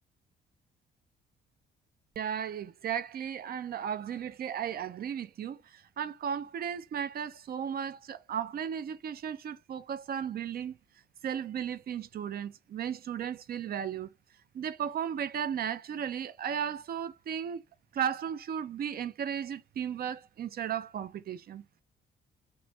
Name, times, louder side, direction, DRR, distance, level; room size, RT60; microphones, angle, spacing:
voice 1, 2.2-10.8 11.2-14.1 14.5-17.6 17.9-21.8, right 8 dB, 50° right, 0.5 m, -35 dB
3.1 x 2.1 x 3.2 m
cardioid pair, 90°, 20 cm